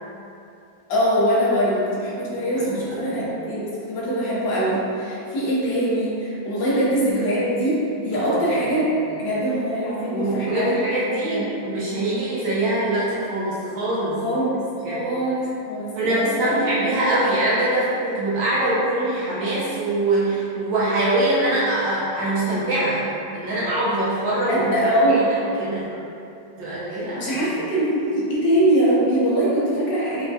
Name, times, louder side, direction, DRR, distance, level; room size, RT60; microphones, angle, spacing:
voice 1, 0.9-10.8 11.2-11.5 14.2-16.5 24.5-25.3 26.9-30.3, right 1 dB, 70° left, -7 dB, 1.5 m, -23 dB
voice 2, 2.5-3.2 6.6-6.8 7.1-7.2 8.2-8.4 10.1-14.2 14.8-15.0 16.0-23.0 23.3-24.8 25.1-25.9 26.6-27.4, right 1 dB, 75° right, -9 dB, 1.5 m, -23 dB
5.8 x 2.2 x 2.7 m, 2.7 s
omnidirectional pair, 2.1 m